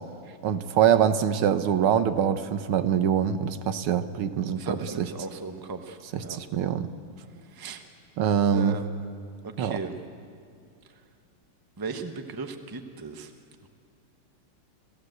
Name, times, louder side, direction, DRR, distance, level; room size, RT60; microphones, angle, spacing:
voice 1, 0.4-5.1 6.1-6.9 8.2-8.8 9.6-9.8, right 8 dB, 80° right, 10 dB, 1.8 m, -24 dB
voice 2, 4.6-6.4 7.5-7.8 8.5-8.9 9.6-10.0 11.8-13.3, right 4 dB, 15° right, 6 dB, 0.7 m, -36 dB
29.5 x 15.5 x 7.9 m, 2.5 s
omnidirectional pair, 2.4 m